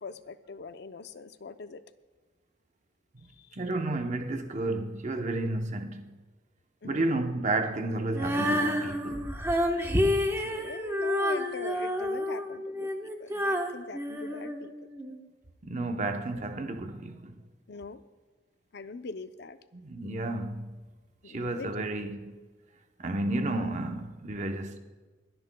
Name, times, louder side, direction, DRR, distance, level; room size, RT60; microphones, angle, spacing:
voice 1, 0.0-1.8 3.4-3.5 6.8-7.5 10.1-14.7 17.7-18.0 18.7-19.6 21.2-21.7, left 4 dB, 60° left, 0.6 m, -42 dB
voice 2, 3.6-6.1 6.8-9.3 15.6-17.3 19.7-20.8 21.3-22.3 23.0-24.8, right 2 dB, 40° right, 0.8 m, -32 dB
Female singing, 8.1-15.2, equal, 15° right, 1.1 m, -29 dB
28.0 x 10.0 x 2.3 m
head